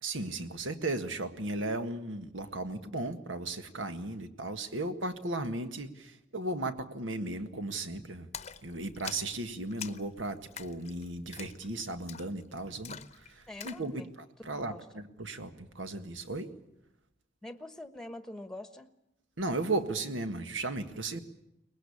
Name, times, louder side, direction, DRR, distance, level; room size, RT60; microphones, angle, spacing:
voice 1, 0.0-8.3 8.6-16.5 19.4-21.2, right 2 dB, 90° right, 9 dB, 1.7 m, -36 dB
Splash splatter, 8.3-13.9, left 8 dB, 35° left, 0.8 m, -46 dB
voice 2, 13.5-14.1 14.4-15.0 17.4-18.9, left 1 dB, 5° left, 10 dB, 1.1 m, -45 dB
23.5 x 20.0 x 8.6 m, 0.84 s
head